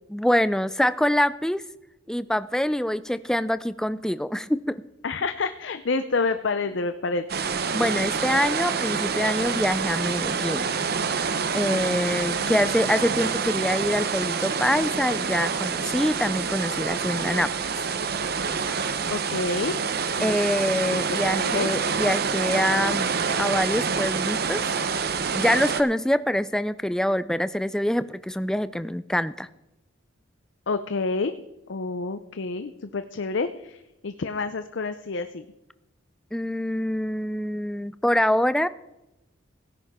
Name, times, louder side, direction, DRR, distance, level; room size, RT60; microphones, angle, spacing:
voice 1, 0.1-1.6 2.1-4.8 7.7-10.7 11.5-17.5 20.2-23.1 23.4-24.7 25.3-29.5 36.3-38.7, equal, 5° left, 14 dB, 0.3 m, -25 dB
voice 2, 5.0-7.5 11.7-12.8 19.1-19.8 20.2-20.4 20.9-21.7 30.7-31.4 31.7-35.5, left 3 dB, 60° left, 10 dB, 0.6 m, -29 dB
sound 1, 7.3-25.8, right 5 dB, 50° right, 0.7 m, -27 dB
17.0 x 10.5 x 3.6 m, 0.95 s
head